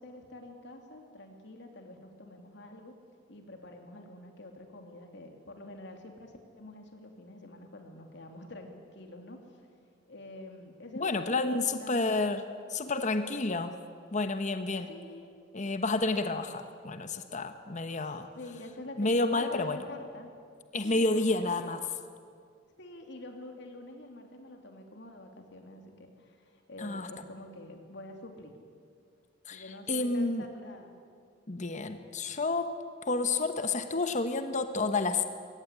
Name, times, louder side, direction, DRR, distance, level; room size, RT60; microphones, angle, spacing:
voice 1, 0.0-2.9 3.3-9.6 10.1-12.1 14.9-15.3 18.0-20.3 20.8-21.7 22.8-28.5 29.5-31.0, left 2 dB, 65° left, 4 dB, 2.9 m, -47 dB
voice 2, 11.0-13.8 14.1-14.9 15.5-18.3 19.0-19.8 20.7-21.8 26.8-27.1 29.5-30.5 31.5-32.7 33.1-35.3, left 3 dB, 40° left, 9 dB, 1.2 m, -30 dB
22.5 x 17.5 x 9.9 m, 2.2 s
head